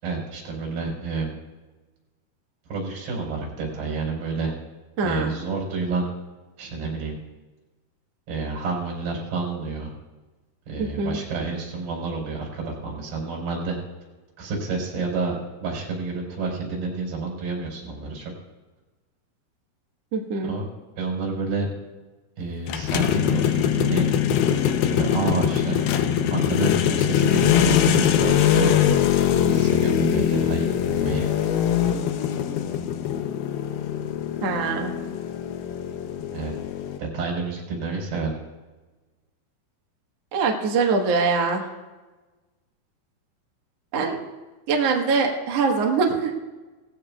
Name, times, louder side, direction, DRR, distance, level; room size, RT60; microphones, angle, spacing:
voice 1, 0.0-1.3 2.7-4.5 5.0-6.1 6.6-7.2 8.3-9.9 10.7-13.8 14.4-18.3 20.4-20.7 21.0-21.7 22.4-24.1 24.9-25.8 26.3-28.7 29.2-31.3 36.3-36.5 37.0-38.3, right 4 dB, 85° right, -2 dB, 6.0 m, -29 dB
voice 2, 5.0-5.3 10.8-11.2 20.1-20.5 34.4-35.0 40.3-41.7 43.9-44.2 44.7-46.4, right 4 dB, 55° right, 1 dB, 2.1 m, -23 dB
sound 1, 22.7-37.0, left 9 dB, 90° left, 2.8 m, -22 dB
19.0 x 15.5 x 2.4 m, 1.2 s
omnidirectional pair, 4.3 m